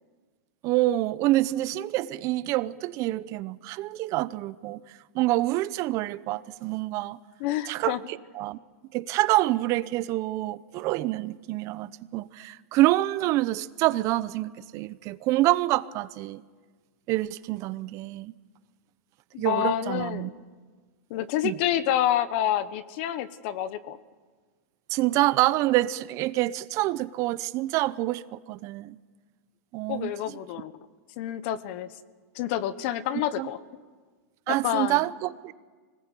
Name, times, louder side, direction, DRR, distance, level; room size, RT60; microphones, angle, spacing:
voice 1, 0.6-7.2 7.7-8.6 8.9-16.4 17.1-18.3 19.4-20.3 21.4-21.5 24.9-29.0 29.7-30.4 33.4-33.5 34.5-35.5, right 17 dB, 40° right, 15 dB, 0.8 m, -27 dB
voice 2, 7.4-8.0 19.3-20.3 21.1-24.0 29.9-30.7 31.2-31.9 32.3-33.6 34.5-35.0, left 11 dB, 50° left, 14 dB, 1.2 m, -28 dB
25.5 x 19.5 x 8.3 m, 1.5 s
hypercardioid pair, 135°, 8 cm